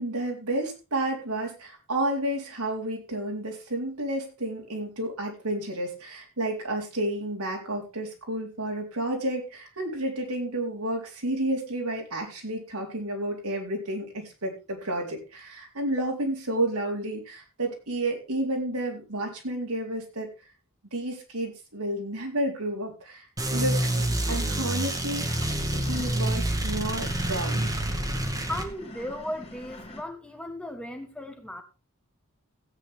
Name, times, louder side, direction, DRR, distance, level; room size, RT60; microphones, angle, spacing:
voice 1, 0.0-20.3 20.9-23.3 23.5-23.9 24.3-27.9, right 1 dB, 85° right, 1 dB, 4.0 m, -31 dB
sound 1, 23.4-28.7, right 1 dB, 15° right, 1.8 m, -27 dB
sound 2, 23.7-30.0, left 1 dB, 25° left, 2.1 m, -44 dB
voice 2, 28.5-31.6, left 1 dB, 5° left, 6 dB, 1.3 m, -36 dB
16.5 x 8.8 x 3.6 m, 0.30 s
head